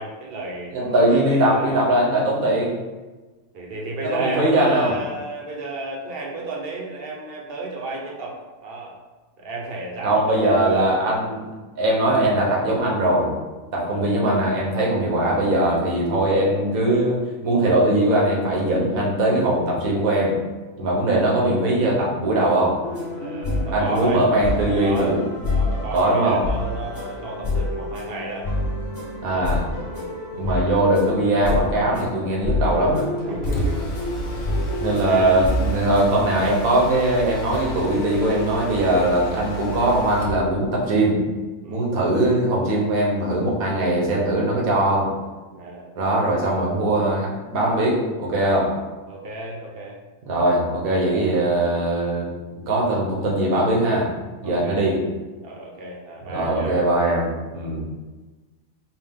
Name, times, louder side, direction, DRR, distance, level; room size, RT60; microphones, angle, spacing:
voice 1, 0.0-2.1 3.5-9.0 9.4-10.8 13.8-14.1 23.2-25.1 25.4-28.5 29.3-29.5 29.8-30.1 33.3-34.0 34.9-35.4 41.6-41.9 45.5-45.9 49.1-50.0 54.4-55.0 55.4-56.8, right 2 dB, 50° right, -1 dB, 0.9 m, -33 dB
voice 2, 0.7-2.7 4.0-4.9 10.0-11.4 11.8-13.3 13.7-20.4 20.8-22.8 23.7-25.2 25.9-26.4 29.2-29.6 30.4-33.1 34.8-41.2 41.7-45.1 46.0-48.7 50.3-52.3 52.6-54.1 54.4-55.0 56.3-57.8, right 1 dB, 80° right, -3 dB, 1.4 m, -20 dB
sound 1, 22.8-36.0, left 2 dB, 15° left, 1.0 m, -28 dB
Mechanisms, 33.2-40.5, equal, 80° left, 1.3 m, -33 dB
4.8 x 2.3 x 3.6 m, 1.2 s
omnidirectional pair, 1.4 m